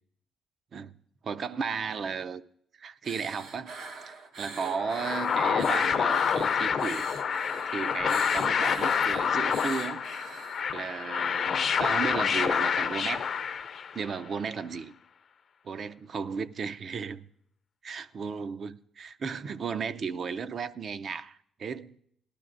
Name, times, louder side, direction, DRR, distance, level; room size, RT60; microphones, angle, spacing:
voice 1, 1.2-2.4 2.8-3.7 4.0-7.1 7.7-10.0 10.7-13.3 13.9-14.9 15.6-17.3 17.8-21.9, right 5 dB, 50° right, 0.5 m, -34 dB
sound 1, 3.0-10.6, right 3 dB, 80° right, 1.0 m, -44 dB
sound 2, 4.7-14.1, left 7 dB, 55° left, 0.5 m, -27 dB
18.0 x 11.5 x 2.5 m
cardioid pair, 90°, 0 cm